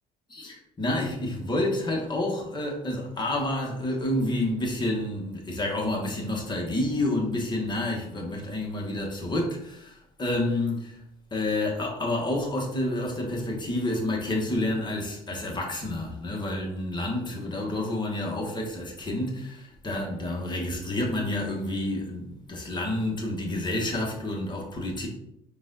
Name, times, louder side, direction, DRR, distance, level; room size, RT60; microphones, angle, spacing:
voice 1, 0.3-11.0 11.3-25.1, left 1 dB, 25° left, 1.2 m, -29 dB
4.7 x 2.5 x 3.9 m
cardioid pair, 110°, 17 cm